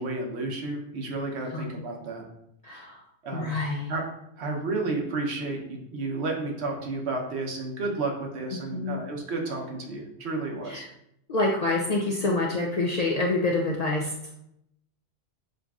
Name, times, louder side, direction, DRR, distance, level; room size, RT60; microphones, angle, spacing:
voice 1, 0.0-2.2 2.7-2.8 3.2-3.6 3.9-4.0 4.4-10.8, right 3 dB, 75° right, 1 dB, 1.1 m, -32 dB
voice 2, 2.6-3.0 3.3-3.9 8.5-9.0 10.7-10.9 11.3-14.1, left 2 dB, 55° left, -2 dB, 0.4 m, -27 dB
6.3 x 2.5 x 2.3 m, 0.76 s
omnidirectional pair, 1.1 m